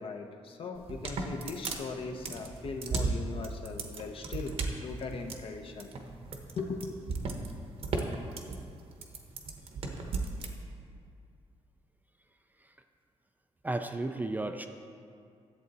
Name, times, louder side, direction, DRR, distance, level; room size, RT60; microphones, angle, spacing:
voice 1, 0.0-5.9 6.6-7.0, left 4 dB, 55° left, 4 dB, 0.8 m, -39 dB
sound 1, 0.8-10.5, right 3 dB, 60° right, 1.0 m, -35 dB
voice 2, 13.6-14.7, right 2 dB, 15° right, 6 dB, 0.3 m, -33 dB
11.0 x 7.7 x 4.1 m, 2.4 s
wide cardioid pair, 150°, 11 cm